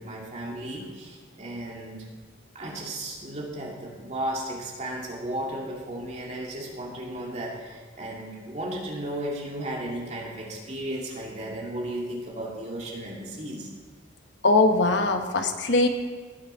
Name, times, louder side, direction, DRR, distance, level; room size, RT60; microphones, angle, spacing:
voice 1, 0.0-2.0 2.5-13.7, right 1 dB, 35° right, -3 dB, 2.6 m, -34 dB
voice 2, 14.4-15.9, left 2 dB, 65° left, 5 dB, 1.1 m, -21 dB
18.5 x 7.2 x 5.6 m, 1.5 s
head